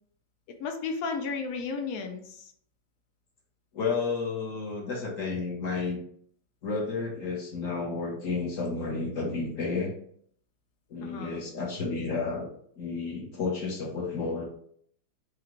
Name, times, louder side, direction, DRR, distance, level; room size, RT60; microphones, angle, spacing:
voice 1, 0.6-2.5 11.0-11.4, left 4 dB, 80° left, 4 dB, 0.7 m, -33 dB
voice 2, 3.7-6.0 6.6-9.9 10.9-12.5 12.8-14.4, left 4 dB, 50° left, -2 dB, 1.1 m, -31 dB
4.9 x 2.4 x 3.0 m, 0.62 s
omnidirectional pair, 2.2 m